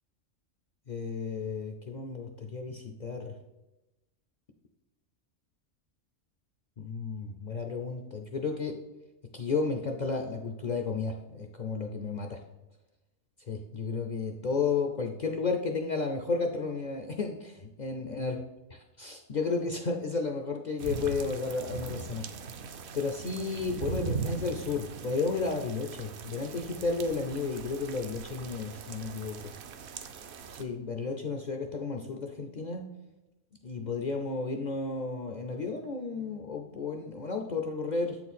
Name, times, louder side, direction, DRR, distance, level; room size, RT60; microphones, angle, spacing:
voice 1, 0.9-3.4 6.8-8.8 9.3-12.4 13.5-18.4 19.0-29.5 30.5-32.9 33.6-38.2, left 4 dB, 60° left, 3 dB, 0.4 m, -33 dB
sound 1, 20.8-30.6, right 5 dB, 65° right, 0.8 m, -40 dB
7.8 x 4.4 x 4.1 m, 1.0 s
omnidirectional pair, 1.4 m